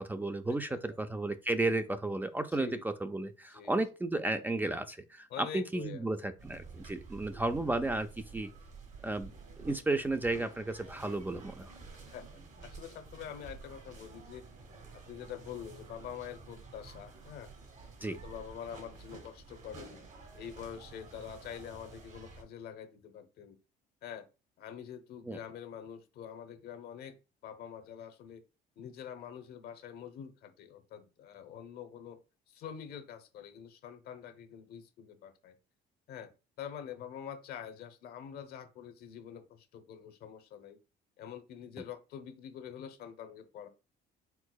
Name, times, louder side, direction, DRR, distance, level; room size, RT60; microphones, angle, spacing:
voice 1, 0.0-8.5 9.0-9.3 9.6-11.7 18.0-18.2 25.3-25.4, right 2 dB, 10° right, 0.3 m, -33 dB
voice 2, 2.5-2.8 3.5-3.8 5.3-6.1 11.9-14.4 14.9-17.5 18.0-20.0 20.3-23.6 24.0-24.3 24.6-27.2 27.4-28.4 28.8-35.6 36.1-36.3 36.6-40.8 41.2-43.7, left 8 dB, 70° left, 0.8 m, -46 dB
sound 1, 6.4-22.4, right 4 dB, 45° right, 1.4 m, -51 dB
4.6 x 3.9 x 2.2 m
cardioid pair, 110°, 17 cm